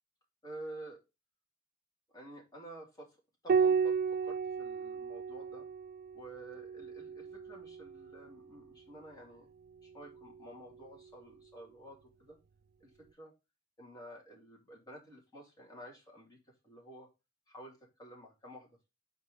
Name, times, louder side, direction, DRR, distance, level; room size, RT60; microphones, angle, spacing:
voice 1, 0.4-1.0 2.1-3.2 3.4-5.7 6.1-9.5 9.8-12.4 12.8-13.3 13.8-16.4 16.6-17.1 17.5-18.9, right 1 dB, 20° left, -2 dB, 2.5 m, -51 dB
Piano, 3.5-8.3 10.0-10.8, right 6 dB, 45° right, 0.3 m, -34 dB
4.7 x 4.5 x 5.3 m, 0.26 s
head